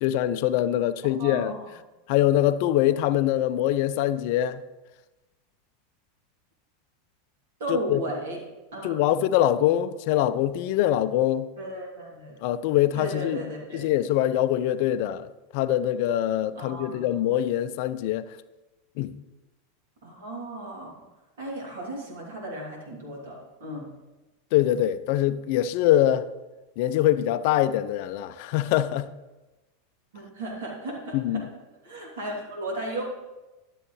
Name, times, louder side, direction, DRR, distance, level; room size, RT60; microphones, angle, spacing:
voice 1, 0.0-1.5 2.1-4.6 7.7-8.0 8.8-11.5 12.4-13.4 13.7-18.2 19.0-19.1 24.5-26.2 26.8-29.1 31.1-31.4, left 12 dB, 55° left, 0.4 m, -23 dB
voice 2, 1.2-1.7 7.6-8.4 8.7-8.9 11.6-12.4 12.9-13.9 16.5-17.1 20.0-20.9 21.4-23.9 30.1-31.4 31.8-33.0, right 1 dB, 65° right, 2.9 m, -35 dB
11.5 x 7.7 x 3.2 m
figure-of-eight pair, 85°, 0 cm